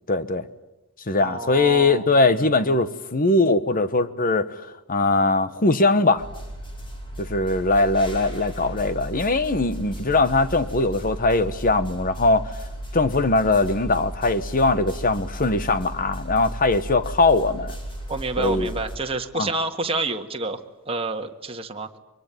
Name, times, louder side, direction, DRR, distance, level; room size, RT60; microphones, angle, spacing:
voice 1, 0.1-0.5 1.1-6.3 7.2-12.5 12.9-17.8 18.4-18.7 19.3-19.5, left 3 dB, 40° left, 1.2 m, -21 dB
voice 2, 1.2-2.1 18.1-21.9, right 3 dB, 25° right, 1.8 m, -28 dB
sound 1, 6.2-19.0, right 1 dB, 20° left, 4.6 m, -35 dB
24.0 x 24.0 x 9.1 m
head